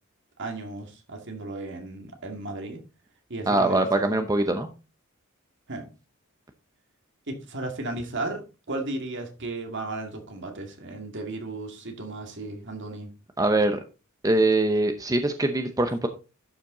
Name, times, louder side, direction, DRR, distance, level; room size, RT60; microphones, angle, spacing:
voice 1, 0.4-2.8 3.3-3.9 5.7-5.9 7.3-13.1, right 2 dB, 60° right, 2.2 m, -35 dB
voice 2, 3.5-4.7 13.4-13.8 14.2-16.1, right 2 dB, 15° right, 0.8 m, -23 dB
12.0 x 5.8 x 3.9 m
head